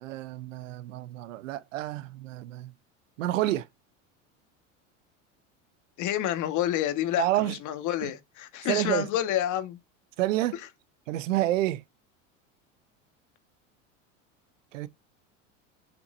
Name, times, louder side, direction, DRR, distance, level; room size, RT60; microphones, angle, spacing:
voice 1, 0.0-2.7 3.2-3.7 7.2-7.6 8.0-8.1 8.6-9.1 10.2-10.6 11.1-11.8 14.7-14.9, right 15 dB, 85° right, 0.8 m, -29 dB
voice 2, 6.0-9.8, left 12 dB, 50° left, 1.5 m, -29 dB
7.2 x 6.0 x 2.6 m
supercardioid pair, 100°, 37 cm